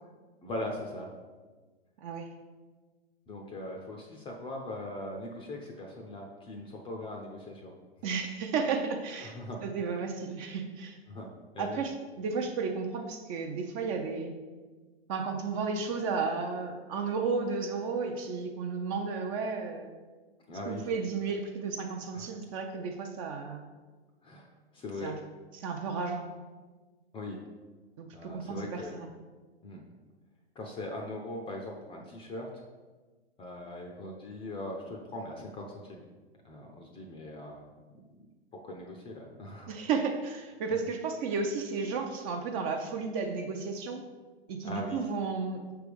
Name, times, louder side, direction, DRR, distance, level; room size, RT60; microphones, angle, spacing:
voice 1, 0.4-1.1 3.3-7.7 9.2-9.6 11.1-11.3 11.5-11.8 20.5-20.9 22.1-22.3 24.2-24.5 24.7-25.1 27.1-27.4 28.1-28.9 29.6-29.8 30.6-32.5 33.4-36.0 36.4-37.6 37.9-38.0 38.5-39.7 44.6-45.0, left 1 dB, 15° left, 1 dB, 0.5 m, -40 dB
voice 2, 8.0-9.3 9.6-11.0 11.6-14.3 15.1-19.9 20.7-23.6 25.0-25.2 25.5-26.3 28.0-29.1 39.7-44.0 44.5-45.6, right 5 dB, 35° right, 4 dB, 0.5 m, -33 dB
5.8 x 3.4 x 5.1 m, 1.3 s
hypercardioid pair, 110°, 32 cm